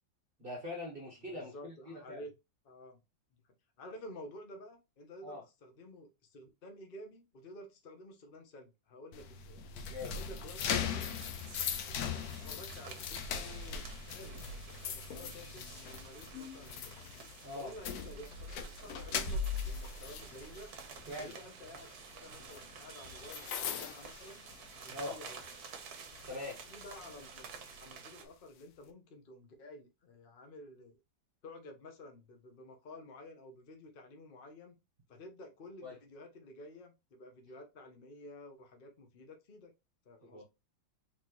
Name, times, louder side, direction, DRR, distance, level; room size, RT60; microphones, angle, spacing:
voice 1, 0.4-2.2 5.2-5.4 9.7-10.1 17.4-17.7 21.1-21.4 24.9-25.2 26.3-26.6 35.8-36.0 40.3-40.4, left 2 dB, 35° right, 1.2 m, -42 dB
voice 2, 1.3-2.3 2.6-3.0 3.3-3.4 3.8-9.6 10.1-11.2 11.7-17.0 17.5-20.7 21.1-21.9 22.1-24.5 24.8-25.4 26.7-31.0 31.4-34.7 35.1-39.7 40.0-40.4, left 1 dB, 35° left, 1.1 m, -52 dB
sound 1, 9.1-25.0 25.4-25.7 26.1-27.8, left 6 dB, 65° left, 1.0 m, -40 dB
sound 2, 10.6-28.2, right 6 dB, 60° right, 1.4 m, -51 dB
4.3 x 4.2 x 3.0 m
omnidirectional pair, 2.1 m